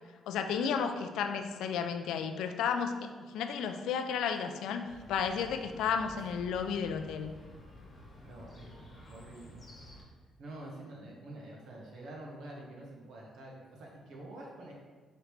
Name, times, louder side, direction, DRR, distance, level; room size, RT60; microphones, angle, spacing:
voice 1, 0.3-7.3, left 6 dB, 85° left, 6 dB, 0.3 m, -33 dB
Chirp tweet, 4.9-10.0, left 1 dB, 35° left, 1.0 m, -52 dB
voice 2, 8.2-9.6 10.4-14.7, right 1 dB, 70° right, -2 dB, 1.0 m, -47 dB
4.9 x 3.2 x 3.1 m, 1.4 s
cardioid pair, 90°, 0 cm